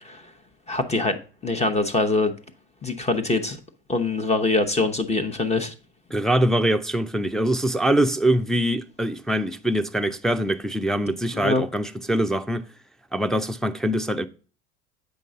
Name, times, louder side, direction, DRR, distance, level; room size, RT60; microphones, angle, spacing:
voice 1, 0.7-1.2 1.4-2.3 2.8-3.6 3.9-5.7 11.3-11.6, left 3 dB, 20° left, 1.0 m, -23 dB
voice 2, 6.1-12.6 13.1-14.3, right 1 dB, ahead, 0.5 m, -23 dB
7.9 x 5.2 x 3.7 m
hypercardioid pair, 70°, 33 cm